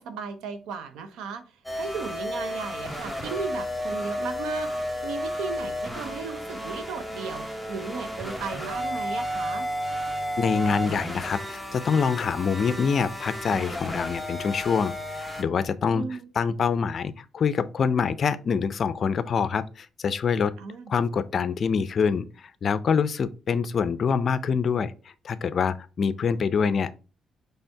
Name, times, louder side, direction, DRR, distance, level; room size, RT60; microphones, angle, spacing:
voice 1, 0.0-4.7 5.0-9.7 15.9-16.3 20.6-20.9, right 5 dB, 90° right, 0.7 m, -36 dB
sound 1, 1.6-15.4, equal, 5° right, 0.9 m, -32 dB
voice 2, 10.4-16.0 16.4-20.5 20.9-24.9 25.2-26.9, left 6 dB, 50° left, 0.4 m, -25 dB
4.4 x 3.4 x 3.4 m
cardioid pair, 90°, 0 cm